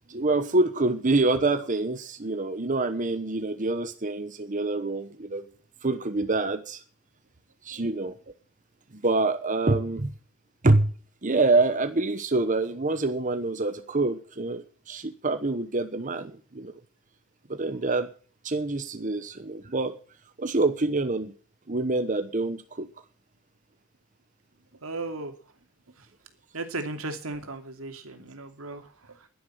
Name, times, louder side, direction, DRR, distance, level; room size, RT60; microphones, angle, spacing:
voice 1, 0.1-5.4 5.8-6.8 7.6-8.1 8.9-10.1 10.6-10.9 11.2-16.7 17.5-18.1 18.4-19.9 20.4-21.3 21.7-22.9, right 2 dB, 40° right, 1.1 m, -26 dB
voice 2, 24.8-25.3 26.0-26.1 26.5-29.3, right 2 dB, 90° right, 2.8 m, -36 dB
11.0 x 10.5 x 9.1 m
head